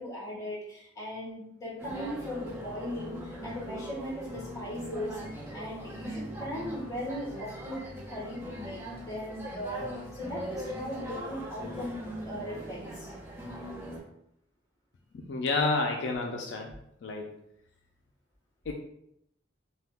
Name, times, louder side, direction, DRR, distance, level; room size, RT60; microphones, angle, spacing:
voice 1, 0.0-5.2 5.5-13.1, left 1 dB, 20° left, -6 dB, 1.2 m, -38 dB
sound 1, 1.8-14.0, equal, 15° right, 0.6 m, -41 dB
voice 2, 15.1-16.7 17.0-17.3 18.7-18.8, left 3 dB, 70° left, 1 dB, 0.4 m, -30 dB
2.8 x 2.2 x 3.4 m, 0.75 s
head